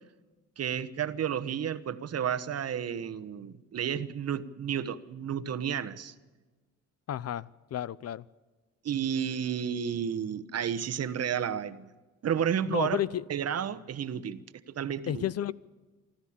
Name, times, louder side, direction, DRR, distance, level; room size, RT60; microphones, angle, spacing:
voice 1, 0.6-6.1 8.8-11.9 12.2-13.0 13.3-15.2, right 8 dB, 55° right, 13 dB, 1.2 m, -31 dB
voice 2, 7.1-8.2 12.7-13.2 15.1-15.5, left 11 dB, 55° left, 20 dB, 0.6 m, -32 dB
25.0 x 13.0 x 8.7 m, 1.3 s
cardioid pair, 90°, 30 cm